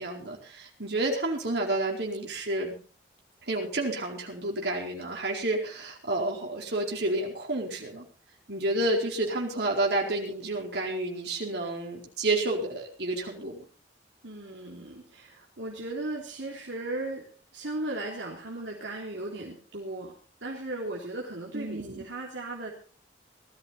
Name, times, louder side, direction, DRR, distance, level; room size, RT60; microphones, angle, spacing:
voice 1, 0.0-2.7 3.5-8.0 8.5-13.6 21.5-22.0, right 2 dB, 60° right, 0 dB, 4.5 m, -30 dB
voice 2, 14.2-20.1 20.4-22.7, right 2 dB, 75° right, -2 dB, 3.4 m, -36 dB
19.0 x 13.5 x 4.1 m, 0.37 s
head